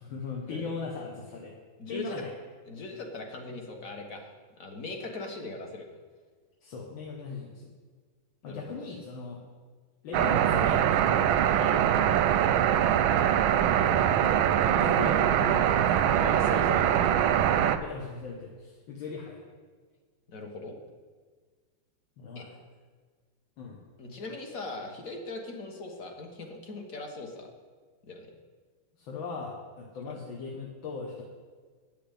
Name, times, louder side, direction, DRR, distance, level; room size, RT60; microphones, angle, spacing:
voice 1, 0.0-1.5 1.9-2.3 3.5-3.6 6.6-7.7 8.4-9.4 10.0-11.8 13.8-16.1 16.5-17.3 17.7-19.4 22.2-22.5 23.6-23.8 29.0-31.2, left 4 dB, 75° left, -2 dB, 2.0 m, -39 dB
voice 2, 1.8-2.2 2.7-4.3 4.6-5.9 8.4-9.0 16.1-16.9 20.3-20.8 22.3-22.4 24.0-27.5 28.0-28.3 30.0-30.2, left 2 dB, 45° left, 3 dB, 1.7 m, -40 dB
sound 1, 10.1-17.8, right 10 dB, 90° right, 1.4 m, -23 dB
9.5 x 6.9 x 8.3 m, 1.5 s
omnidirectional pair, 2.2 m